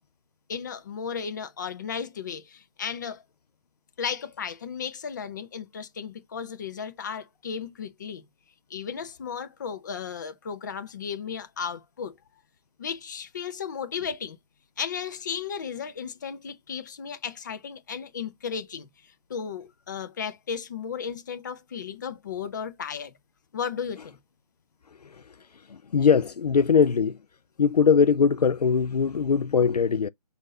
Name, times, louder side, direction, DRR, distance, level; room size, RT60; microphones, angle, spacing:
voice 1, 0.5-3.2 4.0-8.3 8.7-12.2 12.8-14.4 14.8-23.2 23.5-24.2, left 7 dB, 30° left, 0.6 m, -35 dB
voice 2, 25.9-27.2 27.6-30.1, left 6 dB, 70° left, 0.4 m, -21 dB
6.1 x 2.6 x 2.7 m
figure-of-eight pair, 145°, 21 cm